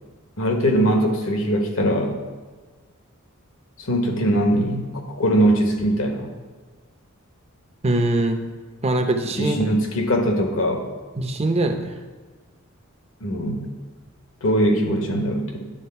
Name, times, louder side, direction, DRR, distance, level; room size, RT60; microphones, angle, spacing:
voice 1, 0.4-2.2 3.8-6.3 9.4-10.8 13.2-13.6 14.4-15.7, right 1 dB, 65° left, 3 dB, 1.1 m, -21 dB
voice 2, 7.8-8.4 8.8-9.6 11.2-11.9, right 2 dB, 30° right, 6 dB, 0.6 m, -22 dB
10.0 x 3.9 x 5.6 m, 1.4 s
head